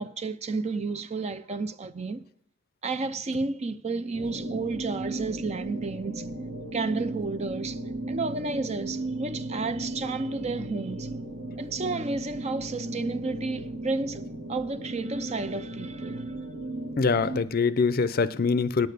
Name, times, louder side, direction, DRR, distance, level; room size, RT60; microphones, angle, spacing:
voice 1, 0.0-2.3 2.8-6.3 6.7-7.8 8.1-11.1 11.6-16.3, right 3 dB, 30° right, 0.5 m, -32 dB
sound 1, 4.1-17.4, right 1 dB, 60° right, 1.3 m, -36 dB
voice 2, 17.0-18.9, left 4 dB, 45° left, 0.5 m, -24 dB
9.1 x 8.6 x 6.6 m
head